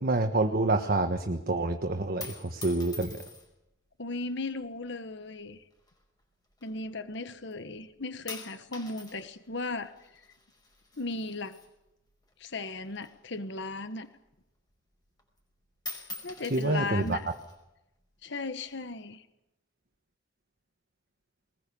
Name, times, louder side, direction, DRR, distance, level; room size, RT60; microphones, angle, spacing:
voice 1, 0.0-3.2 16.5-17.2, right 2 dB, 50° right, 5 dB, 1.4 m, -27 dB
sound 1, 2.2-3.7 4.5-5.0 5.8-7.2 7.5-7.9 8.3-12.3 12.6-14.3 14.7-14.8 15.1-15.5 15.8-17.6 18.4-19.0, left 2 dB, 20° left, 5.2 m, -46 dB
voice 2, 4.0-5.6 6.6-9.9 11.0-11.6 12.4-14.1 16.2-17.3 18.2-19.2, left 3 dB, 60° left, 11 dB, 1.3 m, -36 dB
22.0 x 20.0 x 7.1 m, 0.90 s
head